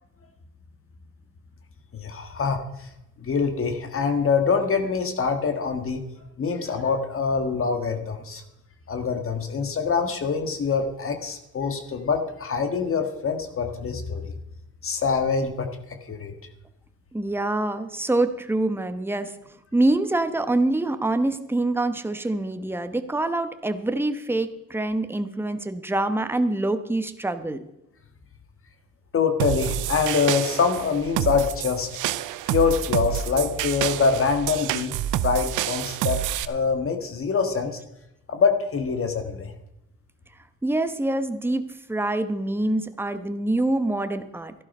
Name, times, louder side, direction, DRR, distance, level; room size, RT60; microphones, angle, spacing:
voice 1, 1.9-2.9 3.2-6.0 6.4-8.4 8.9-14.4 14.8-16.3 29.1-31.9 32.5-34.9 35.2-36.2 36.5-37.8 38.3-39.5, left 5 dB, 45° left, 7 dB, 1.7 m, -25 dB
voice 2, 17.1-19.3 19.7-27.6 40.6-44.5, right 2 dB, 5° right, 9 dB, 1.0 m, -25 dB
sound 1, 29.4-36.4, right 12 dB, 90° right, 0.6 m, -28 dB
13.0 x 11.5 x 5.5 m, 0.84 s
cardioid pair, 90°, 30 cm